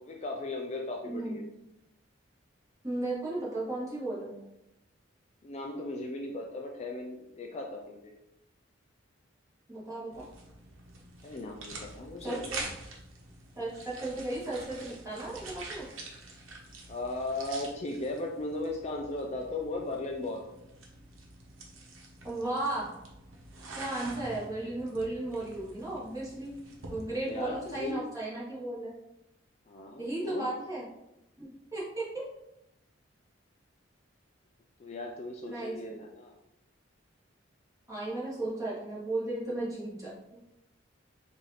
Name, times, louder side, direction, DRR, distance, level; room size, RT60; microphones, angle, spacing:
voice 1, 0.0-1.4 5.4-8.1 11.2-12.4 16.9-20.4 27.2-28.0 29.7-30.5 34.8-36.3, left 2 dB, 35° left, 1 dB, 0.4 m, -37 dB
voice 2, 1.0-1.5 2.8-4.4 9.7-10.3 12.2-12.6 13.5-15.9 22.2-22.9 23.7-26.5 26.9-28.9 30.0-30.9 31.4-32.3 35.5-36.0 37.9-40.1, right 2 dB, 15° right, -8 dB, 1.6 m, -35 dB
sound 1, 10.1-27.9, right 2 dB, 90° right, 1.0 m, -46 dB
4.7 x 2.7 x 4.1 m, 0.89 s
head